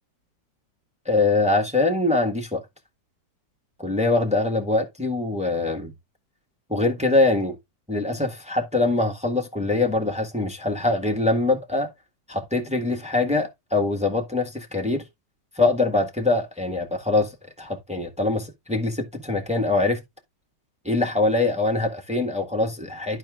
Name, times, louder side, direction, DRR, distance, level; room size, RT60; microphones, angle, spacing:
voice 1, 1.0-2.6 3.8-5.9 6.7-7.5 7.9-11.9 12.3-15.0 15.5-17.3 17.6-20.0 20.8-23.2, left 2 dB, 5° right, 1.5 m, -23 dB
12.0 x 4.3 x 3.7 m
omnidirectional pair, 1.9 m